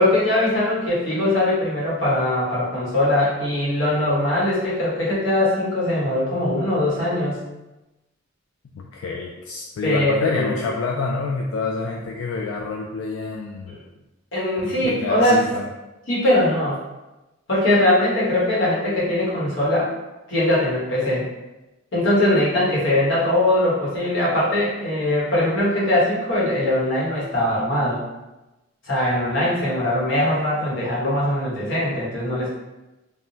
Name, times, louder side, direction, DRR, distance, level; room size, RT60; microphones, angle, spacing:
voice 1, 0.0-7.4 9.8-10.6 13.7-13.8 14.3-15.4 16.1-16.8 17.5-19.9 20.3-21.3 21.9-28.0 28.8-32.5, left 1 dB, 65° left, -7 dB, 1.1 m, -21 dB
voice 2, 8.7-13.7 14.6-15.7, left 3 dB, 90° left, 0 dB, 0.3 m, -27 dB
3.4 x 2.1 x 2.7 m, 1.0 s
head